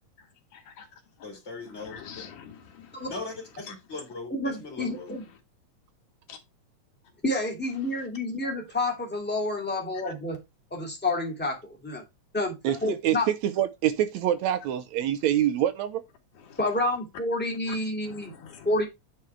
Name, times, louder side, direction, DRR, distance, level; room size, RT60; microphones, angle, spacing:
voice 1, 0.5-0.9 1.9-2.9 3.7-3.8 6.3-6.4 16.5-16.6 18.1-18.7, left 7 dB, 90° left, 3.3 m, -45 dB
voice 2, 1.2-2.3 3.1-5.1, left 3 dB, 20° left, 3.4 m, -39 dB
voice 3, 4.3-5.3 7.2-10.4 10.7-12.0 12.3-12.6 12.8-13.3 16.6-18.3 18.6-18.9, left 2 dB, 5° left, 2.3 m, -29 dB
voice 4, 12.6-16.0, right 11 dB, 75° right, 2.0 m, -26 dB
9.7 x 4.7 x 4.4 m
omnidirectional pair, 3.4 m